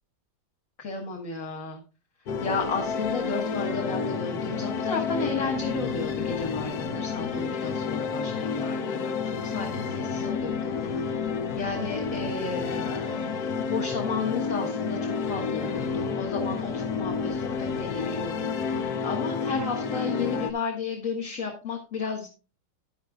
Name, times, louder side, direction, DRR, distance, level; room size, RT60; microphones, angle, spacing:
voice 1, 0.8-1.8 2.4-11.1 11.5-13.2 13.7-22.3, left 4 dB, 40° left, 0 dB, 1.9 m, -33 dB
sound 1, 2.3-20.5, left 5 dB, 60° left, 1.1 m, -30 dB
11.5 x 11.0 x 2.4 m, 0.31 s
omnidirectional pair, 2.3 m